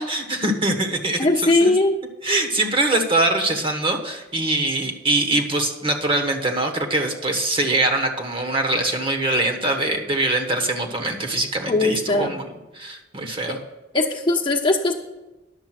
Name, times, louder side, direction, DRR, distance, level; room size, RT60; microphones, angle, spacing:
voice 1, 0.0-1.7 2.2-12.4 12.7-13.6, right 2 dB, 30° right, 3 dB, 1.3 m, -23 dB
voice 2, 1.2-1.9 11.7-12.3 13.9-14.9, left 2 dB, 25° left, 0 dB, 1.1 m, -19 dB
11.0 x 7.0 x 6.0 m, 1.0 s
head